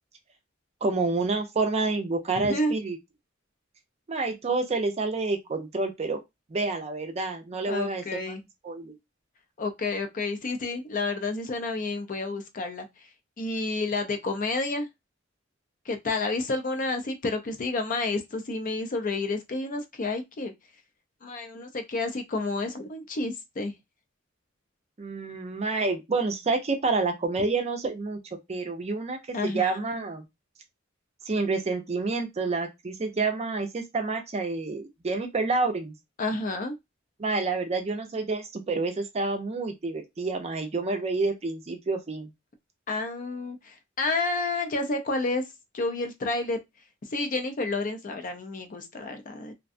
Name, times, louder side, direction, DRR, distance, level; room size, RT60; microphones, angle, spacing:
voice 1, 0.8-3.0 4.1-6.2 6.5-8.4 8.6-9.0 25.0-28.2 28.5-30.2 31.3-35.9 37.2-42.3, right 3 dB, 35° right, 0.5 m, -28 dB
voice 2, 7.7-8.4 9.6-13.1 13.4-14.9 15.9-20.5 21.2-23.7 29.3-29.8 36.2-36.7 42.9-45.5 45.7-46.6 47.1-49.5, left 3 dB, 40° left, 0.5 m, -30 dB
2.5 x 2.2 x 2.5 m
head